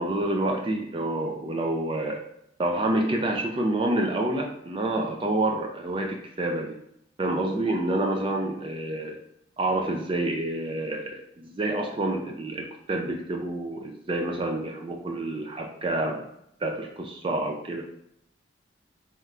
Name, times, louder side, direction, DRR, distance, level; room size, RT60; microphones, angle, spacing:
voice 1, 0.0-2.2 2.6-6.7 7.2-9.2 9.6-16.2 16.6-17.8, right 1 dB, 25° right, 2 dB, 0.3 m, -28 dB
3.4 x 2.4 x 4.2 m, 0.75 s
head